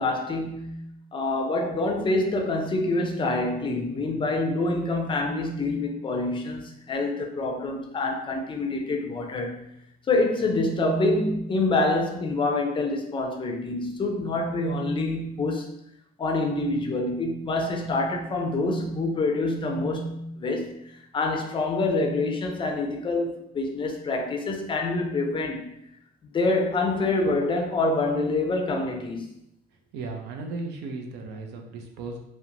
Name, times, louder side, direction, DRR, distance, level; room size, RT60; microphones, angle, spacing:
voice 1, 0.0-9.6 10.1-15.7 16.2-25.7 26.3-29.3, left 2 dB, 30° left, 3 dB, 0.4 m, -26 dB
voice 2, 29.9-32.2, right 3 dB, 85° right, 3 dB, 0.5 m, -35 dB
2.9 x 2.0 x 2.5 m, 0.78 s
cardioid pair, 110°, 17 cm